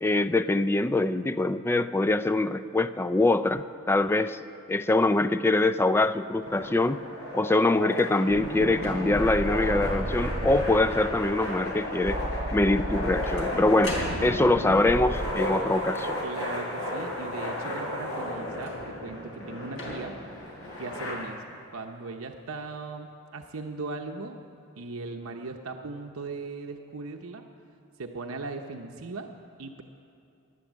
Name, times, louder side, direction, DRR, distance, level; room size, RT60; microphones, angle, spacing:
voice 1, 0.0-4.4 4.7-7.0 7.3-12.2 12.5-16.2, left 2 dB, 10° left, 12 dB, 0.3 m, -24 dB
sound 1, 6.4-21.1, left 1 dB, 70° left, 5.0 m, -34 dB
sound 2, 7.8-8.2 8.8-9.3 9.9-10.3 10.5-11.1 12.8-14.7 18.5-19.1 19.7-20.3 21.1-21.2, left 1 dB, 90° left, 3.7 m, -40 dB
sound 3, 8.3-15.4, right 1 dB, 45° right, 1.2 m, -33 dB
voice 2, 16.2-20.1 20.8-24.4 24.8-27.4 28.0-29.3 29.6-29.8, right 3 dB, 85° right, 4 dB, 0.8 m, -38 dB
17.0 x 11.5 x 7.4 m, 2.5 s
head